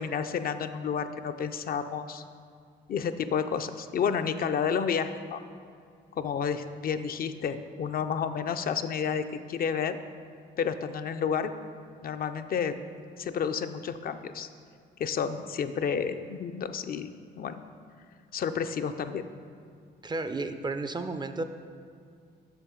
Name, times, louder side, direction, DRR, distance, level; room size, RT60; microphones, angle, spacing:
voice 1, 0.0-2.2 2.9-5.4 6.1-10.0 10.6-11.5 12.0-12.8 13.2-14.5 15.0-17.1 17.4-17.6 18.3-19.2, left 7 dB, 50° left, 9 dB, 0.4 m, -30 dB
voice 2, 20.0-21.4, right 3 dB, 20° right, 9 dB, 0.3 m, -32 dB
7.1 x 6.6 x 3.7 m, 2.2 s
cardioid pair, 90°, 20 cm